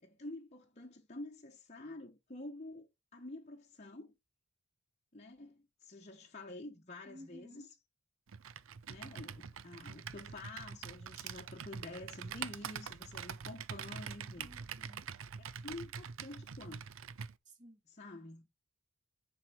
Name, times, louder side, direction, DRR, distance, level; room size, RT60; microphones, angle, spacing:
voice 1, 0.0-4.1 5.1-7.7 8.9-14.5 15.4-17.0 18.0-18.4, left 2 dB, 30° left, 1.1 m, -49 dB
voice 2, 7.0-7.7 14.4-15.1 17.4-17.8, equal, 35° right, 3.1 m, -55 dB
Computer keyboard, 8.3-17.3, right 7 dB, 60° right, 0.5 m, -45 dB
10.5 x 4.7 x 4.5 m
head